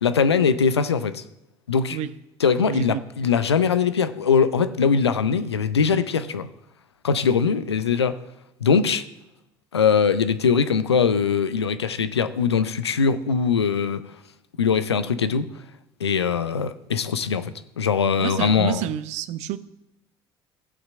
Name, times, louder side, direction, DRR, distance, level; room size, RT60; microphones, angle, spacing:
voice 1, 0.0-1.2 1.7-2.0 2.4-6.5 7.0-8.2 8.6-9.0 9.7-14.0 14.6-15.5 16.0-18.8, left 6 dB, 85° left, 0.6 m, -21 dB
voice 2, 2.6-3.0 18.2-19.6, right 12 dB, 60° right, 0.7 m, -29 dB
15.5 x 5.8 x 7.5 m
figure-of-eight pair, 60°, 13 cm